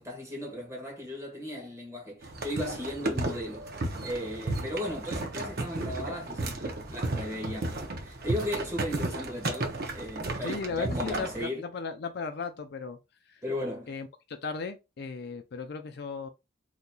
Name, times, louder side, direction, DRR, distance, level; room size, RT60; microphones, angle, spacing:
voice 1, 0.0-3.7 4.0-11.6 13.4-14.0, left 1 dB, 15° right, 1.3 m, -36 dB
sound 1, 2.2-11.4, right 2 dB, 55° right, 0.7 m, -34 dB
voice 2, 10.4-13.0 13.9-14.1 14.4-16.3, left 4 dB, 55° left, 0.4 m, -36 dB
3.9 x 2.9 x 2.3 m
head